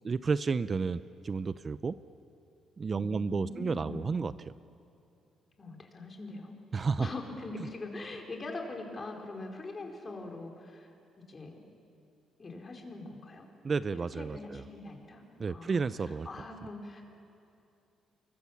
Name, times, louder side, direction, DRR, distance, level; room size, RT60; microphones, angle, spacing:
voice 1, 0.0-1.9 2.8-4.5 6.7-7.1 7.6-7.7 13.6-14.6 15.4-16.3, right 4 dB, 35° right, 14 dB, 0.6 m, -31 dB
voice 2, 2.9-4.2 5.6-6.6 7.0-10.9 11.3-11.6 12.4-13.5 14.2-15.2 15.5-17.0, left 2 dB, 35° left, 2 dB, 4.8 m, -42 dB
28.5 x 24.0 x 7.3 m, 2.7 s
cardioid pair, 90°, 0 cm